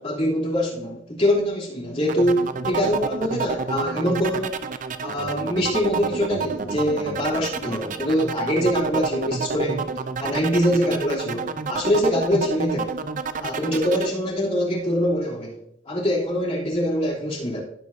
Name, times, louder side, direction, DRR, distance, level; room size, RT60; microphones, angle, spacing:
voice 1, 0.0-4.6 5.0-9.9 10.2-13.0 13.4-15.6 15.9-17.6, equal, 30° left, -4 dB, 3.0 m, -24 dB
sound 1, 2.1-14.1, right 5 dB, 40° right, 0.6 m, -29 dB
16.0 x 8.2 x 2.7 m, 0.71 s
head